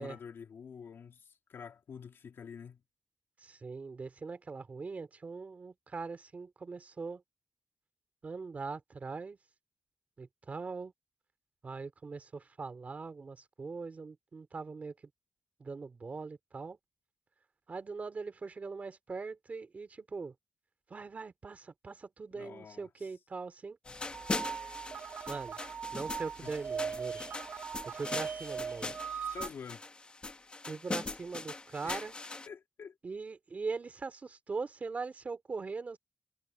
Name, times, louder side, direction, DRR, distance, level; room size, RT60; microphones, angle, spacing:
voice 1, 0.0-2.8 22.3-22.9 26.4-26.5 29.3-29.8 31.8-32.1 32.5-33.0, left 6 dB, 65° left, 2.5 m, -47 dB
voice 2, 3.4-7.2 8.2-9.4 10.2-10.9 11.6-14.9 15.6-16.8 17.7-20.3 20.9-23.8 25.3-25.6 25.9-27.2 27.8-28.9 30.7-32.1 33.0-36.0, right 4 dB, 35° right, 2.8 m, -41 dB
sound 1, 23.9-32.5, left 3 dB, 25° left, 1.1 m, -41 dB
sound 2, 24.1-29.5, right 6 dB, 55° right, 2.0 m, -39 dB
wide cardioid pair, 170°, 4 cm